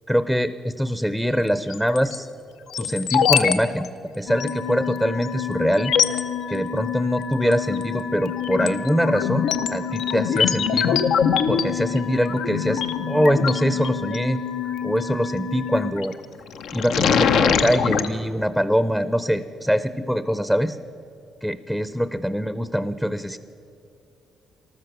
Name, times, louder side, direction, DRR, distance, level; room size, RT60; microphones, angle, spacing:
voice 1, 0.1-2.3 2.8-3.9 4.2-5.9 6.5-11.0 11.5-14.4 14.8-16.2 16.7-20.8 21.4-23.4, equal, ahead, 12 dB, 0.5 m, -23 dB
sound 1, 1.7-2.2 2.7-3.6 3.8-3.9 4.4-4.5 5.2-5.3 5.7-6.2 7.5-7.8 8.2-14.2 15.8-16.1 16.5-18.1, left 7 dB, 85° left, 0.7 m, -23 dB
sound 2, 4.3-15.9, left 7 dB, 65° left, 1.4 m, -30 dB
14.0 x 13.0 x 6.7 m, 2.7 s
cardioid pair, 90°, 0 cm